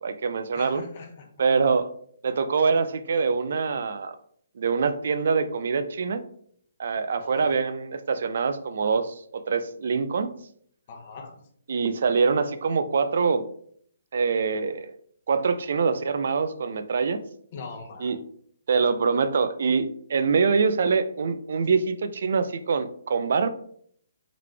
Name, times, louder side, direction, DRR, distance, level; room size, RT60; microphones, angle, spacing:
voice 1, 0.0-0.8 1.4-1.9 2.2-4.2 4.6-6.2 6.8-10.3 11.7-13.4 14.1-15.0 15.3-17.2 18.0-18.2 18.7-23.5, right 5 dB, 60° right, 11 dB, 0.4 m, -24 dB
voice 2, 0.5-1.3 7.2-7.6 10.9-11.3 17.5-18.2, left 4 dB, 40° left, 3 dB, 0.8 m, -41 dB
3.9 x 3.2 x 3.3 m, 0.63 s
hypercardioid pair, 160°, 0 cm